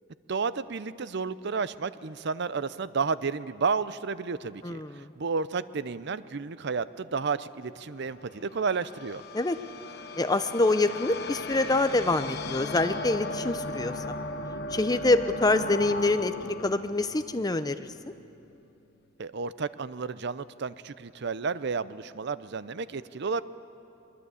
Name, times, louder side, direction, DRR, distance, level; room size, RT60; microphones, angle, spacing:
voice 1, 0.3-4.8 5.2-9.2 19.2-23.4, right 5 dB, 60° right, 16 dB, 0.6 m, -31 dB
voice 2, 4.6-5.1 9.3-9.6 10.2-14.2 14.7-17.9, left 2 dB, 20° left, 10 dB, 0.7 m, -26 dB
sound 1, 7.9-18.2, left 2 dB, 55° left, 1.2 m, -37 dB
22.5 x 21.5 x 8.3 m, 2.8 s
head